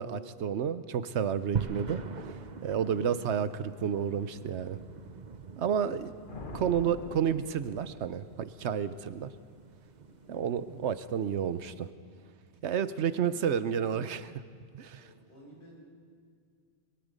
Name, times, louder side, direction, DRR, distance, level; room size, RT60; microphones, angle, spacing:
voice 1, 0.0-2.0 2.6-4.8 5.6-6.1 6.5-9.3 10.3-11.9 12.6-14.3 14.7-15.1, right 8 dB, 90° right, 14 dB, 1.1 m, -30 dB
sound 1, 1.6-11.8, right 6 dB, 45° right, 0.9 m, -43 dB
voice 2, 2.6-3.0 10.0-10.3 13.1-13.5 14.9-15.9, right 1 dB, 75° left, -4 dB, 6.6 m, -55 dB
sound 2, 6.3-8.6, left 3 dB, 50° left, 1.5 m, -45 dB
23.0 x 22.5 x 5.3 m, 2.2 s
omnidirectional pair, 1.1 m